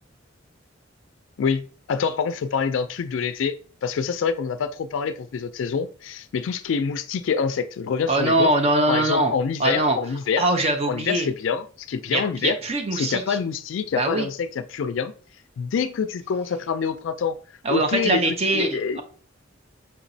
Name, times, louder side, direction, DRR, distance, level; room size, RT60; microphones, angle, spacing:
voice 1, 1.4-3.5 3.8-8.5 8.9-10.5 10.9-12.6 12.9-15.1 15.6-17.4 17.7-18.2 18.5-19.0, left 6 dB, 75° left, 0.4 m, -26 dB
voice 2, 8.1-9.3 9.6-10.0 10.4-11.3 12.1-13.4 13.9-14.3 17.6-19.0, right 2 dB, 35° right, 0.6 m, -22 dB
5.6 x 2.9 x 2.7 m
head